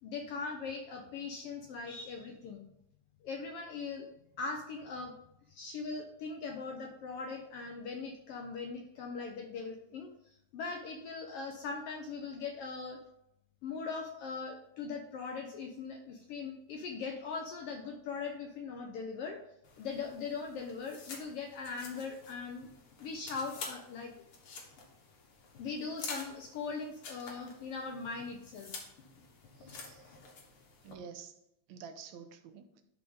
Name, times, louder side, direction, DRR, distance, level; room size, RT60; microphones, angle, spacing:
voice 1, 0.0-2.6 3.2-4.1 4.4-5.2 5.5-13.0 13.6-19.4 19.8-22.7 23.0-24.1 25.6-28.8, left 4 dB, 70° left, 4 dB, 1.4 m, -40 dB
sound 1, 19.6-30.9, left 4 dB, 55° left, 2.0 m, -49 dB
voice 2, 29.6-30.2 30.8-31.4 31.7-32.8, right 6 dB, 80° right, 8 dB, 2.0 m, -49 dB
12.0 x 4.6 x 3.9 m, 0.81 s
omnidirectional pair, 3.3 m